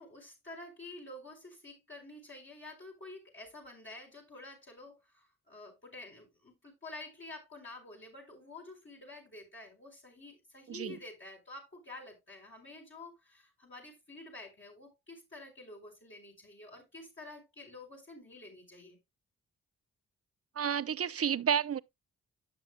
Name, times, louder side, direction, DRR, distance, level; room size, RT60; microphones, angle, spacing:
voice 1, 0.0-19.0, left 2 dB, 35° left, 4.2 m, -49 dB
voice 2, 20.6-21.8, right 8 dB, 45° right, 0.6 m, -31 dB
12.0 x 7.4 x 2.2 m
supercardioid pair, 50°, 33 cm